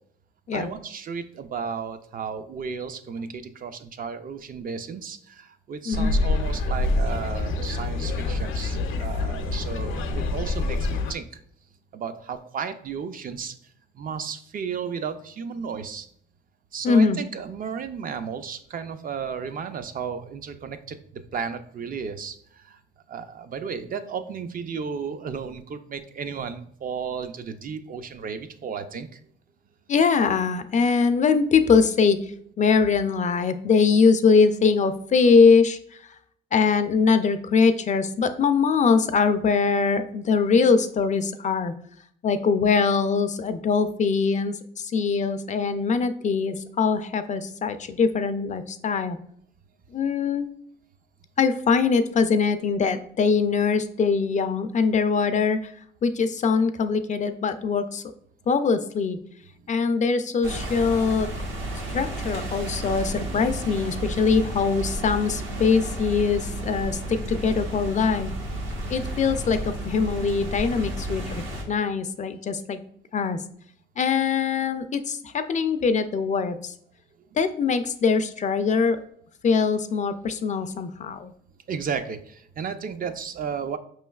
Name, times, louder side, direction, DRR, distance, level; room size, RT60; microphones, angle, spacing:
voice 1, 0.5-11.4 11.9-13.5 13.9-16.1 16.7-22.8 23.1-29.2 71.8-71.9 72.5-72.7 81.7-83.8, right 6 dB, 45° right, 9 dB, 0.4 m, -34 dB
sound 1, 5.9-11.1, left 2 dB, 90° left, 0.6 m, -26 dB
voice 2, 16.8-17.2 29.9-32.2 32.6-35.8 36.5-41.7 42.2-49.2 49.9-50.5 51.4-55.6 56.0-58.0 58.5-59.2 59.7-61.3 61.9-68.3 68.9-72.8 73.1-73.4 74.0-76.7 77.4-79.0 79.4-81.3, left 5 dB, 40° left, 10 dB, 0.4 m, -22 dB
sound 2, 60.4-71.6, right 1 dB, 75° right, 1.1 m, -32 dB
5.1 x 3.1 x 2.3 m, 0.64 s
cardioid pair, 90°, 20 cm